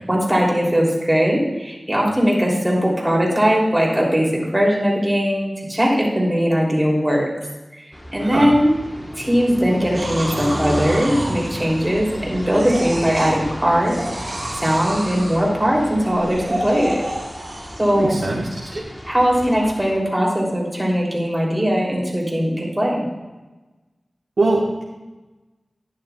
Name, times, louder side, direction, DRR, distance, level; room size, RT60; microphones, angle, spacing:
voice 1, 0.1-7.2 8.1-8.8 9.2-13.9 14.6-17.0 17.8-18.2 19.1-23.1, equal, 15° right, -3 dB, 2.9 m, -19 dB
sound 1, 7.9-20.0, equal, 15° left, 1.1 m, -33 dB
sound 2, 9.9-12.2 12.5-13.4 13.8-15.5 16.1-18.1 18.7-18.8, right 1 dB, 50° right, 1.6 m, -31 dB
voice 2, 18.0-18.7 24.4-24.8, right 2 dB, 85° right, -4 dB, 1.0 m, -22 dB
11.5 x 10.0 x 2.3 m, 1.1 s
wide cardioid pair, 70°, 0 cm